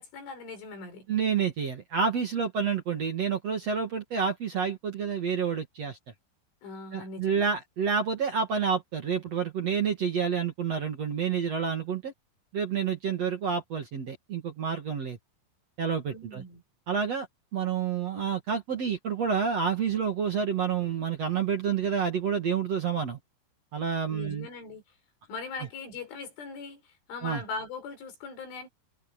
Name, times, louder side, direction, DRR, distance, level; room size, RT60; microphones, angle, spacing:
voice 1, 0.0-1.1 6.6-7.5 16.1-16.6 24.1-25.0 25.3-28.7, left 4 dB, 75° left, 8.9 m, -40 dB
voice 2, 1.1-6.0 6.9-12.1 12.5-15.2 15.8-16.4 16.9-17.3 17.5-23.2 23.7-24.5 27.2-27.4, right 6 dB, 45° right, 2.2 m, -29 dB
omnidirectional pair, 5.6 m